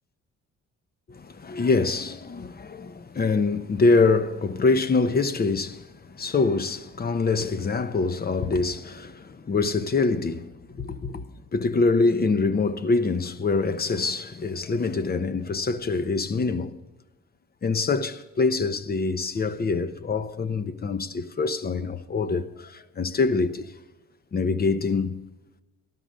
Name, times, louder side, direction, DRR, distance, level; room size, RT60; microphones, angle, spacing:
voice 1, 1.1-11.2 11.5-16.7 17.6-23.7 24.3-25.3, left 4 dB, 30° left, 0.9 m, -25 dB
13.0 x 12.5 x 5.2 m
cardioid pair, 90°, 30 cm